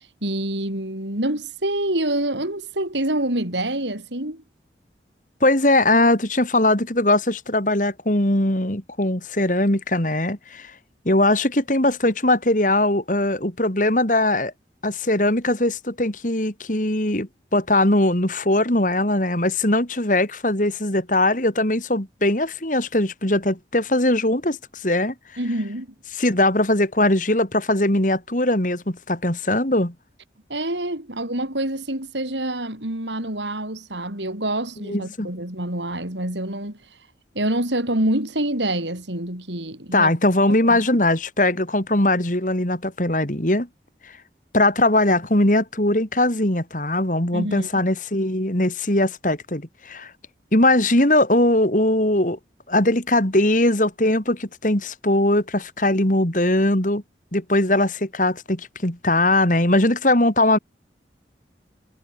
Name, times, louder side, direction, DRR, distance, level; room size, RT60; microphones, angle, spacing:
voice 1, 0.0-4.4 25.4-25.9 30.5-36.8 37.3-40.1 40.5-40.9 47.3-47.8, right 1 dB, 85° right, 7.4 m, -26 dB
voice 2, 5.4-10.7 11.0-14.5 14.8-25.1 26.1-29.9 34.9-35.3 39.9-43.7 44.0-44.1 44.5-50.1 50.5-52.4 52.7-57.0 57.3-60.6, left 1 dB, 45° left, 3.3 m, -20 dB
head